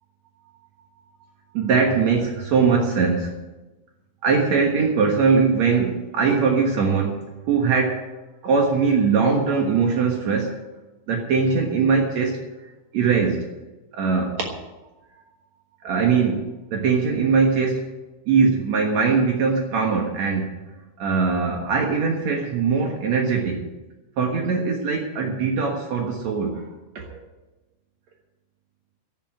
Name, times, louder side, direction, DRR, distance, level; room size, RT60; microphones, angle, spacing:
voice 1, 1.5-3.3 4.2-7.2 7.5-8.0 8.4-10.6 11.1-12.4 12.9-13.4 13.9-14.4 15.8-17.8 18.3-20.5 21.0-23.6 24.2-26.6 26.9-27.2, right 5 dB, 75° right, 1 dB, 1.6 m, -21 dB
12.0 x 9.2 x 8.9 m, 1.1 s
omnidirectional pair, 5.6 m